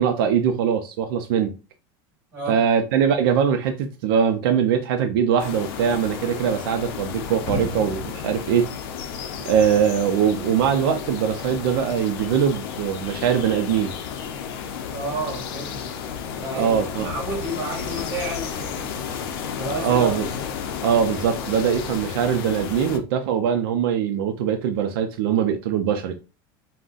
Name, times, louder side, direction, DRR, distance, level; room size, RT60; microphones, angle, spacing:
voice 1, 0.0-1.6 2.5-8.7 9.4-13.9 16.6-17.1 19.7-20.3 20.8-26.1, right 8 dB, 75° right, 0.5 m, -22 dB
voice 2, 2.3-2.6 14.9-15.9 16.4-19.0 19.6-20.1, right 2 dB, 20° right, 1.0 m, -31 dB
sound 1, 5.4-23.0, left 7 dB, 75° left, 0.5 m, -32 dB
sound 2, 7.5-9.6 10.0-10.1, left 3 dB, 25° left, 0.5 m, -36 dB
3.7 x 2.1 x 2.5 m
cardioid pair, 180°, 12 cm